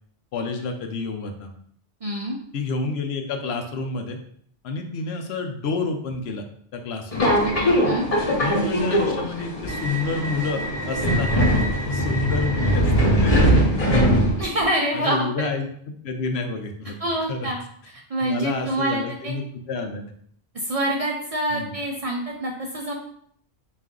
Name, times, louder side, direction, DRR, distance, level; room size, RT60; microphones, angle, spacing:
voice 1, 0.3-1.5 2.5-4.2 4.6-6.4 6.7-7.3 8.4-10.6 10.9-14.2 14.9-17.0 17.3-17.5 18.2-20.1 21.5-21.7, left 4 dB, 65° left, 5 dB, 0.8 m, -29 dB
voice 2, 2.0-2.4 7.8-8.1 14.4-15.5 17.0-17.6 18.1-19.3 20.5-22.9, right 1 dB, 65° right, -1 dB, 0.3 m, -26 dB
Subway metro underground, 7.1-14.7, equal, 35° left, 0.8 m, -21 dB
4.0 x 2.5 x 3.6 m, 0.64 s
omnidirectional pair, 1.2 m